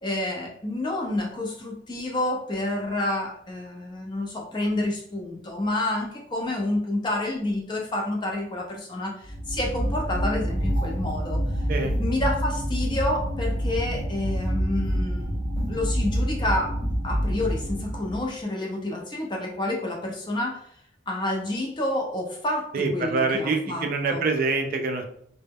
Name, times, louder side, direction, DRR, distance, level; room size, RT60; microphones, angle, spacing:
voice 1, 0.0-11.4 12.0-15.4 15.7-16.7 17.0-20.6 21.1-24.2, left 1 dB, 25° left, 0 dB, 0.5 m, -29 dB
sound 1, 9.2-18.3, equal, 25° right, 0.8 m, -27 dB
voice 2, 22.7-25.0, right 3 dB, 50° right, 4 dB, 0.3 m, -25 dB
2.0 x 2.0 x 3.4 m, 0.69 s
head